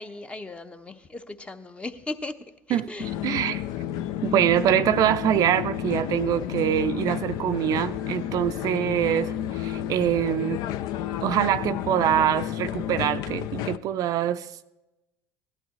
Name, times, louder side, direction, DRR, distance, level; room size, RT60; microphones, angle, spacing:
voice 1, 0.0-2.4 2.7-3.1, left 2 dB, 15° left, 0.8 m, -37 dB
voice 2, 2.7-3.6 4.2-10.6 11.2-14.7, right 10 dB, 50° right, 0.5 m, -24 dB
sound 1, 3.0-13.8, left 11 dB, 60° left, 0.5 m, -31 dB
17.0 x 12.0 x 3.1 m
supercardioid pair, 85°, 8 cm